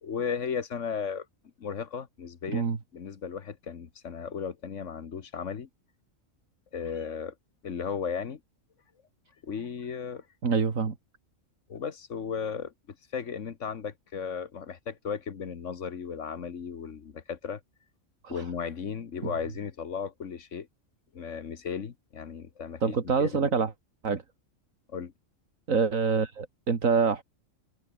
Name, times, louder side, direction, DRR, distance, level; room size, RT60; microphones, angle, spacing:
voice 1, 0.0-1.2 1.6-5.7 6.7-7.3 7.6-8.4 9.4-10.2 11.7-17.6 18.3-20.7 21.1-22.9 23.2-23.5 24.9-25.1, left 6 dB, 65° left, 1.6 m, -35 dB
voice 2, 10.4-11.0 18.2-18.4 19.2-19.3 22.8-23.7 24.0-24.2 25.7-27.2, right 5 dB, 80° right, 2.5 m, -26 dB
omnidirectional pair, 1.4 m